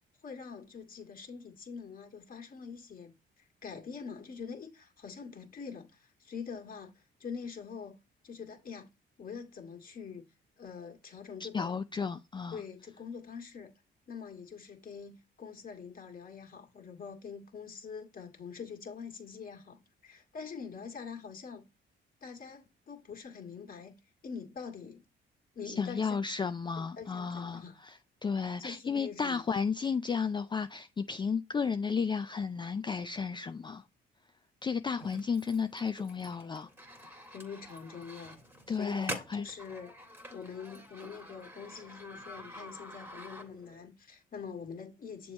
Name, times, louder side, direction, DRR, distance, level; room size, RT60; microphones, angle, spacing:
voice 1, 0.2-8.0 8.2-8.9 9.2-10.2 10.6-11.8 12.5-13.7 14.1-21.6 22.2-23.9 24.2-25.0 25.5-26.2 26.8-27.7 28.6-29.4 37.3-38.4 38.7-39.9 40.3-45.3, left 6 dB, 45° left, 1.8 m, -44 dB
voice 2, 11.4-12.6 25.7-33.8 34.6-36.7 37.0-37.2 38.7-39.5, left 5 dB, 25° left, 0.4 m, -33 dB
sound 1, 35.0-43.8, equal, 10° right, 1.8 m, -47 dB
6.9 x 3.0 x 5.2 m
cardioid pair, 90°, 20 cm